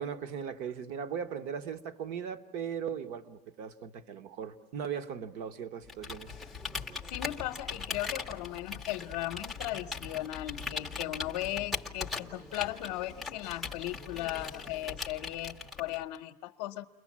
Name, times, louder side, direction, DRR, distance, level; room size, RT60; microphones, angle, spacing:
voice 1, 0.0-6.3, right 7 dB, 40° right, 11 dB, 1.0 m, -38 dB
Computer keyboard, 5.9-16.2, left 4 dB, ahead, 0.8 m, -40 dB
voice 2, 7.1-16.9, left 15 dB, 55° left, 3 dB, 0.9 m, -37 dB
29.5 x 22.5 x 7.4 m, 1.1 s
supercardioid pair, 175°, 20 cm